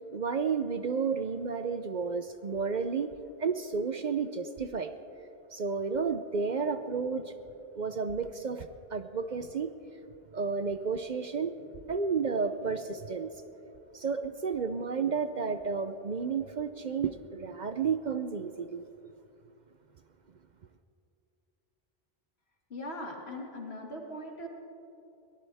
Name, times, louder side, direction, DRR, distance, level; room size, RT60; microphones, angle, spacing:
voice 1, 0.1-3.1 3.4-4.9 5.5-7.4 7.8-9.7 10.3-11.6 11.9-13.3 13.9-18.9, right 5 dB, 50° right, 9 dB, 0.7 m, -32 dB
voice 2, 22.7-24.5, left 1 dB, 75° left, 0 dB, 2.4 m, -40 dB
22.5 x 18.5 x 3.5 m, 2.7 s
omnidirectional pair, 1.1 m